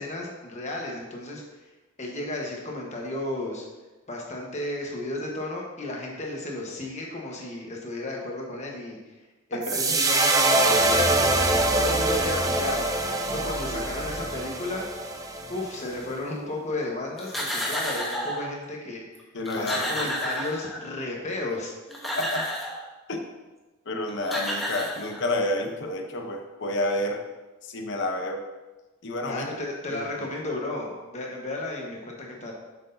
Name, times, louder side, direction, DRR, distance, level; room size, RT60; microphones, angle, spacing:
voice 1, 0.0-1.7 2.0-3.7 4.1-9.0 9.5-14.9 15.5-19.3 19.6-21.7 29.3-32.5, left 2 dB, 35° left, -1 dB, 1.2 m, -33 dB
voice 2, 9.5-10.0 13.7-13.8 19.3-20.1 22.2-22.4 23.1-23.2 23.9-27.2 27.6-28.4 29.0-29.5 29.9-30.3, left 1 dB, 55° left, 4 dB, 0.8 m, -30 dB
sound 1, 9.6-16.0, right 2 dB, 15° right, 0.5 m, -24 dB
sound 2, 17.2-18.5 19.1-19.2 19.4-21.0 21.7-22.8 23.9-24.0 24.2-25.5, equal, ahead, 0.9 m, -31 dB
7.7 x 6.3 x 2.7 m, 1.2 s
head